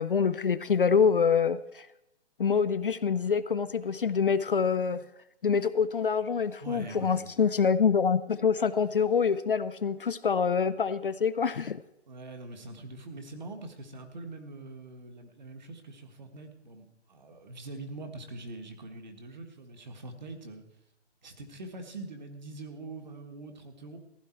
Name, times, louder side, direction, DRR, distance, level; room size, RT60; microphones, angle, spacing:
voice 1, 0.0-1.9 2.4-5.0 5.4-11.8, left 6 dB, 55° left, 14 dB, 0.4 m, -26 dB
voice 2, 6.6-7.3 12.1-20.6 21.2-24.0, right 2 dB, 40° right, 5 dB, 1.6 m, -43 dB
15.5 x 11.0 x 4.5 m, 0.84 s
hypercardioid pair, 180°, 34 cm